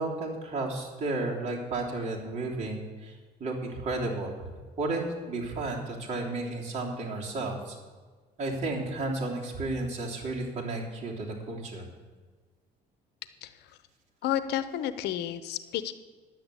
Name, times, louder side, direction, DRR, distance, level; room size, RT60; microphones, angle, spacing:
voice 1, 0.0-4.5 4.8-7.8 8.4-11.8, right 2 dB, 45° right, -2 dB, 3.2 m, -33 dB
voice 2, 14.2-15.9, left 11 dB, 80° left, 13 dB, 0.8 m, -31 dB
10.5 x 7.7 x 8.3 m, 1.4 s
cardioid pair, 110°, 17 cm